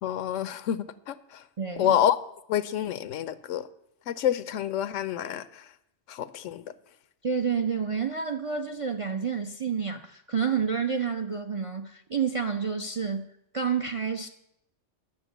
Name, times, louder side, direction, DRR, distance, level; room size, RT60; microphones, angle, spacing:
voice 1, 0.0-1.4 1.8-2.2 2.5-3.7 4.1-5.6 6.1-6.6, left 10 dB, 85° left, 1.0 m, -28 dB
voice 2, 1.6-2.0 7.2-13.2 13.5-14.3, right 6 dB, 45° right, 0.4 m, -29 dB
10.5 x 6.4 x 8.0 m
omnidirectional pair, 1.3 m